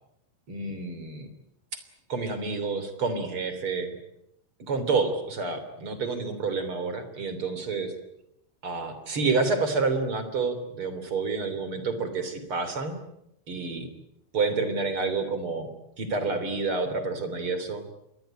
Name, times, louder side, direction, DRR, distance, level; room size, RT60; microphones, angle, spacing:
voice 1, 0.5-1.3 2.1-3.9 4.7-7.9 8.6-13.0 13.5-13.9 14.3-15.7 16.0-17.8, right 4 dB, 30° right, 10 dB, 3.3 m, -29 dB
27.0 x 22.0 x 9.0 m, 0.81 s
omnidirectional pair, 5.4 m